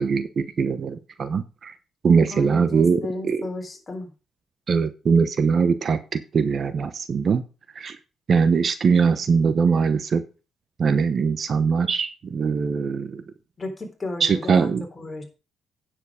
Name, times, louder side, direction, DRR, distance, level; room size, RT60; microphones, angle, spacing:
voice 1, 0.0-1.7 2.0-3.0 3.3-3.4 4.7-7.4 7.7-8.0 8.3-10.2 10.8-13.2 14.2-14.8, right 5 dB, 50° right, 12 dB, 1.0 m, -21 dB
voice 2, 2.3-4.1 13.6-15.2, left 2 dB, 25° left, 3 dB, 3.8 m, -34 dB
9.4 x 7.5 x 5.0 m, 0.32 s
cardioid pair, 85°, 0 cm